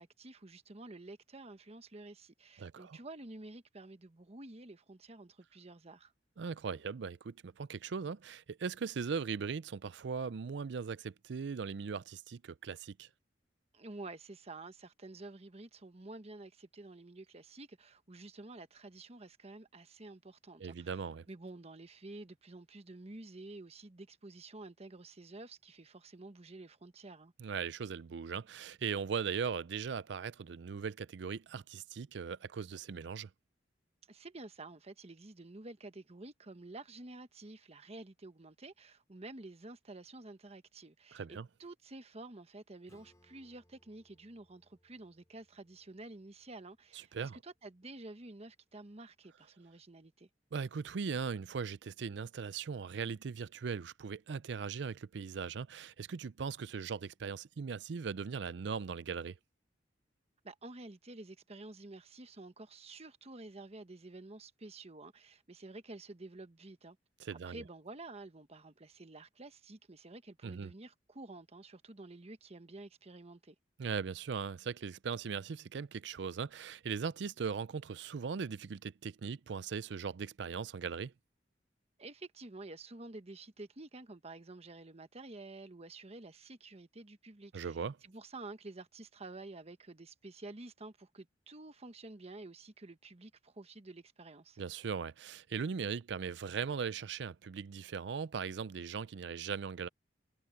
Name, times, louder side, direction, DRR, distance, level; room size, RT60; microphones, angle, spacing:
voice 1, 0.0-6.1 13.7-27.3 34.1-50.3 60.4-67.0 67.5-73.5 82.0-94.6, right 2 dB, 35° right, 1.2 m, -50 dB
voice 2, 2.6-3.0 6.4-13.1 20.6-21.3 27.4-33.3 41.1-41.5 46.9-47.4 50.5-59.4 67.2-67.6 70.4-70.7 73.8-81.1 87.5-88.0 94.6-99.9, right 6 dB, 70° right, 0.4 m, -39 dB
Acoustic guitar / Strum, 42.9-48.1, left 1 dB, 20° left, 3.3 m, -71 dB
head